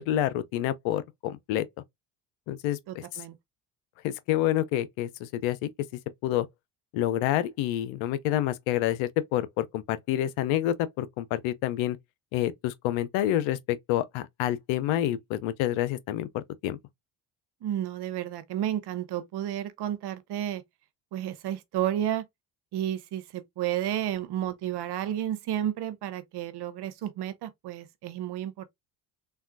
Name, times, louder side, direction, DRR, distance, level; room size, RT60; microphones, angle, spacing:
voice 1, 0.0-1.7 2.5-3.2 4.0-5.7 6.2-6.5 6.9-12.0 12.3-16.8, left 13 dB, 70° left, 0.6 m, -28 dB
voice 2, 2.9-3.3 17.6-20.6 21.1-22.2 22.7-28.7, right 11 dB, 50° right, 0.7 m, -32 dB
3.5 x 2.3 x 2.5 m
supercardioid pair, 70°, 49 cm